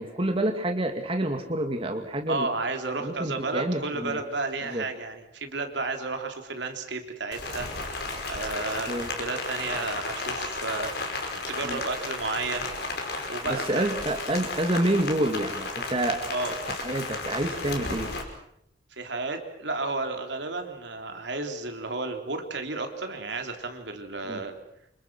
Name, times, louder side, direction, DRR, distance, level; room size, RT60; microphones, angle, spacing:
voice 1, 0.0-2.5 3.0-4.2 4.6-4.8 8.9-9.1 11.6-11.8 13.5-16.2 16.7-18.1 24.2-24.4, right 1 dB, 30° right, 4 dB, 2.2 m, -28 dB
voice 2, 2.3-8.0 8.3-12.7 13.0-13.9 16.3-16.5 19.0-24.5, right 3 dB, 70° right, 4 dB, 3.5 m, -32 dB
Rain, 7.3-18.2, left 3 dB, 60° left, 5.6 m, -33 dB
29.0 x 27.0 x 6.2 m, 0.76 s
head